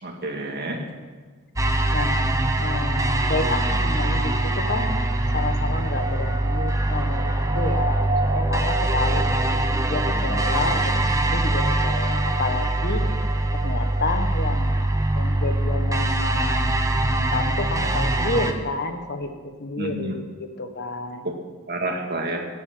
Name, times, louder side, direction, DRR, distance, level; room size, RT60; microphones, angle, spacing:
voice 1, 0.0-0.8 19.8-20.1 21.2-21.4 21.7-22.5, right 2 dB, 45° right, 2 dB, 2.1 m, -29 dB
sound 1, 1.6-18.5, right 1 dB, 15° right, 0.9 m, -23 dB
voice 2, 1.9-5.0 5.3-9.2 9.9-13.1 13.5-14.8 15.1-16.8 17.1-19.3 19.6-20.2 20.6-21.3, left 3 dB, 50° left, 7 dB, 1.3 m, -30 dB
11.5 x 8.3 x 9.1 m, 1.4 s
head